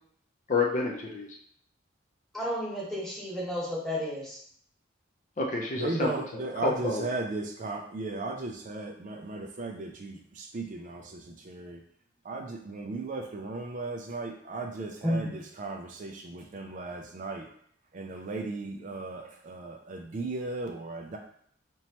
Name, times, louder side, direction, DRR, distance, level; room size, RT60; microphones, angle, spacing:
voice 1, 0.5-1.3 5.4-7.1, left 3 dB, 40° left, 0 dB, 0.5 m, -29 dB
voice 2, 2.3-4.4 15.0-15.3, equal, ahead, -6 dB, 1.2 m, -31 dB
voice 3, 5.8-11.8 12.2-17.5 17.9-21.2, right 2 dB, 40° right, 3 dB, 0.4 m, -36 dB
4.3 x 3.0 x 2.9 m, 0.63 s
head